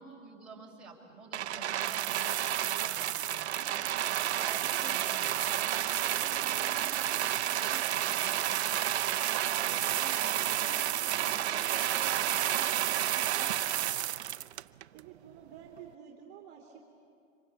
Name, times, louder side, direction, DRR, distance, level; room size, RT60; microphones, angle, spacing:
voice 1, 0.0-3.7 4.1-8.4 9.4-13.9, right 3 dB, 5° right, -4 dB, 5.3 m, -49 dB
sound 1, 1.3-15.0 15.8-15.9, right 12 dB, 55° right, 0.7 m, -30 dB
voice 2, 14.9-16.8, right 8 dB, 25° right, 0 dB, 2.9 m, -50 dB
27.0 x 25.5 x 8.2 m, 2.5 s
hypercardioid pair, 135°, 39 cm